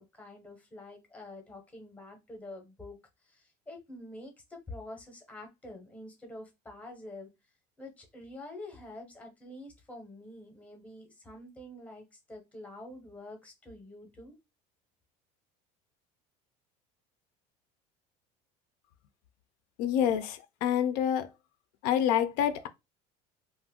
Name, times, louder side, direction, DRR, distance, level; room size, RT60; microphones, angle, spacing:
voice 1, 0.0-7.3 7.8-14.4, left 1 dB, 10° left, 0.7 m, -47 dB
voice 2, 19.8-21.3 21.8-22.7, left 9 dB, 60° left, 0.4 m, -27 dB
2.4 x 2.1 x 3.5 m
cardioid pair, 170°, 16 cm